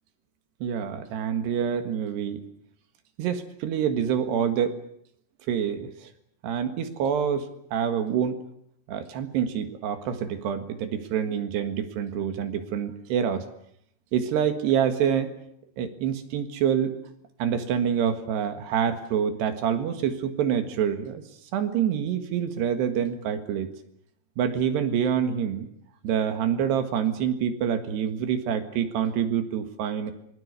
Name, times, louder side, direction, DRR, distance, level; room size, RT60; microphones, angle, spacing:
voice 1, 0.6-2.4 3.2-4.8 5.5-6.1 6.4-8.4 8.9-13.5 14.1-15.3 15.8-17.0 17.4-21.2 21.5-23.7 24.4-25.7 26.0-30.1, right 8 dB, 75° right, 8 dB, 3.8 m, -26 dB
25.5 x 21.0 x 6.8 m, 0.70 s
omnidirectional pair, 4.9 m